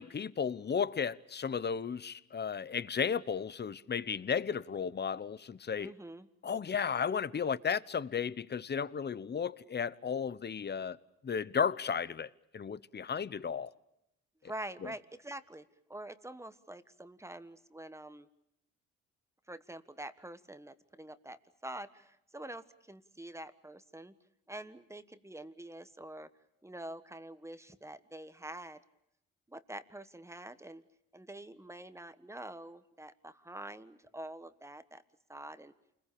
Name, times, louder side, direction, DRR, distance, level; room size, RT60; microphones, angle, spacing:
voice 1, 0.0-5.9 6.4-11.0 11.2-13.7 14.8-14.9, left 6 dB, 35° left, 1.0 m, -34 dB
voice 2, 5.8-6.3 14.4-18.3 19.5-24.1 24.5-26.3 26.6-28.8 29.5-30.8 31.1-35.0 35.3-35.7, right 1 dB, 10° right, 1.4 m, -46 dB
29.0 x 21.5 x 8.6 m
cardioid pair, 90°, 30 cm